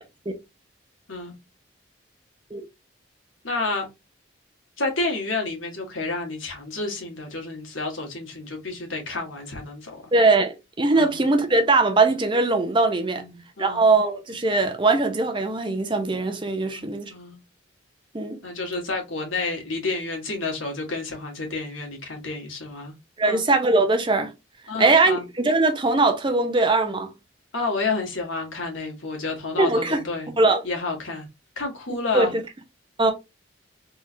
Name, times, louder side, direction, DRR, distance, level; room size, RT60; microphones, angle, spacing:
voice 1, 3.4-3.9 4.8-10.1 10.9-11.2 13.1-13.9 16.7-17.4 18.4-22.9 23.2-23.5 24.7-25.2 27.5-30.3 30.6-31.3 31.6-32.3, left 3 dB, 80° left, 1.6 m, -30 dB
voice 2, 10.1-13.2 13.6-17.1 18.1-18.4 23.2-24.3 24.8-27.1 29.6-30.0 30.4-30.6 32.1-32.3 33.0-33.1, right 3 dB, 25° right, 0.6 m, -21 dB
3.6 x 3.2 x 2.6 m
head